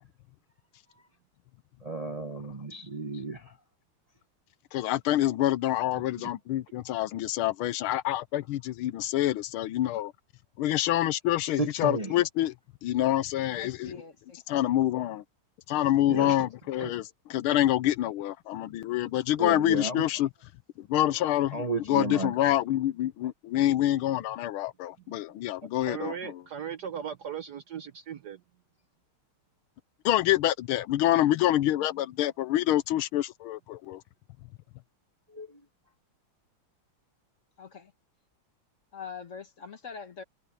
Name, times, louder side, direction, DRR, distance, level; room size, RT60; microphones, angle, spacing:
voice 1, 1.8-3.4 11.6-12.1 16.1-16.4 16.8-16.9 19.4-20.0 21.5-22.3 35.3-35.6, right 2 dB, 25° right, 0.9 m, -33 dB
voice 2, 4.7-10.1 10.6-12.5 12.8-13.9 14.5-15.2 15.7-20.3 20.8-26.3 30.0-34.0, left 13 dB, 80° left, 1.5 m, -27 dB
voice 3, 13.5-14.7 37.6-37.9 38.9-40.2, left 6 dB, 40° left, 1.4 m, -43 dB
voice 4, 25.8-28.4, right 8 dB, 65° right, 1.0 m, -38 dB
omnidirectional pair, 2.4 m